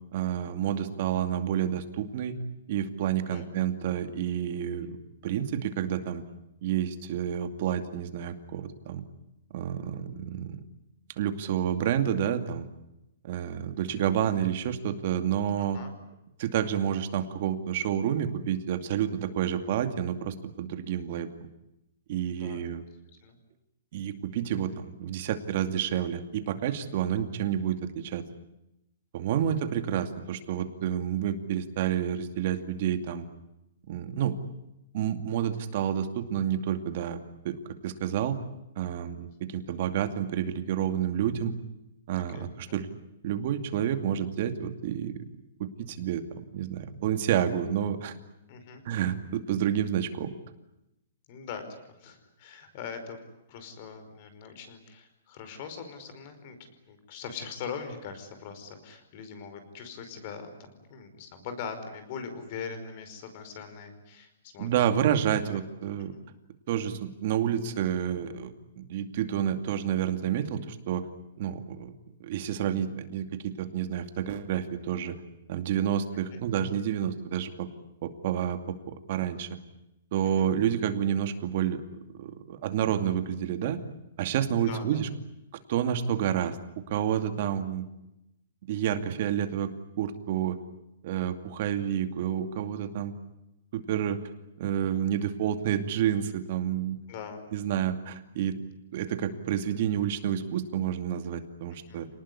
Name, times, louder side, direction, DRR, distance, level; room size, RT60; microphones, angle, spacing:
voice 1, 0.1-2.4 2.7-5.0 5.2-6.2 6.6-9.0 9.5-10.6 11.2-12.7 13.2-15.8 16.4-21.3 22.1-22.8 23.9-28.2 29.1-33.2 33.9-34.3 34.9-37.2 37.4-37.6 37.8-38.4 38.8-41.6 42.1-42.9 43.2-45.1 45.6-46.2 46.5-48.1 48.8-50.3 64.6-66.1 66.7-71.0 71.4-71.9 72.2-75.1 75.5-77.7 78.0-79.5 80.1-81.8 82.2-83.8 84.2-85.1 85.7-86.6 86.9-87.9 88.7-89.7 90.0-90.6 91.0-93.1 93.7-94.2 94.6-97.0 97.5-98.5 98.9-102.1, right 9 dB, 45° right, 8 dB, 2.5 m, -29 dB
voice 2, 22.4-22.7 23.2-23.3 42.3-42.8 48.5-48.8 51.3-51.7 52.0-53.2 53.5-56.6 56.9-65.2 66.1-66.3 76.3-76.4 80.4-80.5 84.6-85.0 97.1-97.5 101.9-102.0, left 6 dB, 40° left, 9 dB, 5.1 m, -41 dB
28.0 x 19.5 x 9.9 m, 0.88 s
hypercardioid pair, 160°, 0 cm